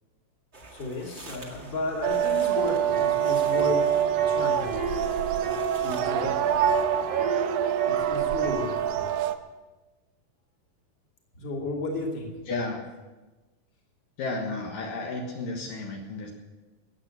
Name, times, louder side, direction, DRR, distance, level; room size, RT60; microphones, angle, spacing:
sound 1, 0.5-6.8, right 2 dB, 30° right, 1.4 m, -47 dB
voice 1, 0.7-4.0 4.3-4.7 5.7-6.6 7.8-8.8 11.4-12.3, left 2 dB, 35° left, -1 dB, 3.0 m, -33 dB
sound 2, 2.0-9.4, right 10 dB, 85° right, 2.5 m, -25 dB
sound 3, 2.6-8.8, right 2 dB, 65° right, 3.7 m, -34 dB
voice 2, 12.5-12.8 14.2-16.3, left 3 dB, 70° left, 1 dB, 3.0 m, -32 dB
14.5 x 9.0 x 8.3 m, 1.2 s
omnidirectional pair, 4.1 m